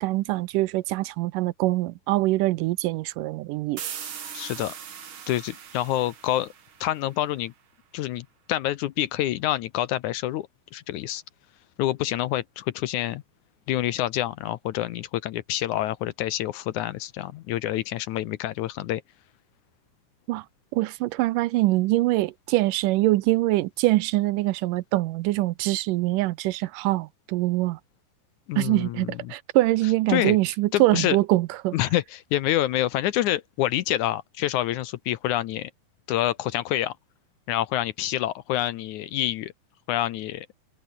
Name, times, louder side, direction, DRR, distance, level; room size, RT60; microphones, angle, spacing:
voice 1, 0.0-3.8 20.3-20.5 20.7-27.8 28.6-31.8, right 18 dB, 80° right, 2.2 m, -24 dB
sound 1, 3.8-7.4, right 8 dB, 45° right, 2.2 m, -40 dB
voice 2, 4.3-4.7 5.3-6.5 6.8-7.5 7.9-11.2 11.8-13.2 13.7-19.0 28.5-29.3 30.1-30.4 30.7-31.2 31.7-35.7 36.1-36.9 37.5-39.5 39.9-40.5, left 13 dB, 75° left, 2.0 m, -27 dB
omnidirectional pair, 3.9 m